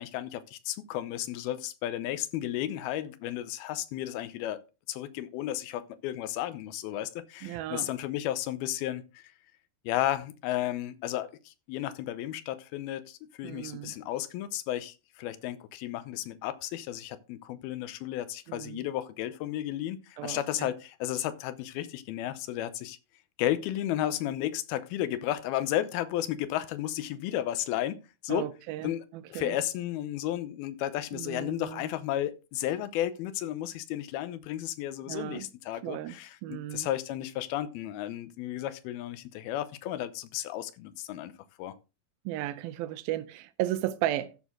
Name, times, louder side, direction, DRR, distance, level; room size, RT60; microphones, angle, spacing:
voice 1, 0.0-9.2 9.8-23.0 23.4-28.5 28.8-29.0 29.3-41.3 41.6-41.8, left 13 dB, 90° left, 2.7 m, -33 dB
voice 2, 7.4-7.9 13.4-14.0 18.5-18.9 20.2-20.7 28.3-29.6 31.1-31.9 35.1-35.5 35.8-36.9 42.3-44.4, right 13 dB, 80° right, 2.6 m, -35 dB
14.5 x 6.4 x 3.7 m
omnidirectional pair, 4.2 m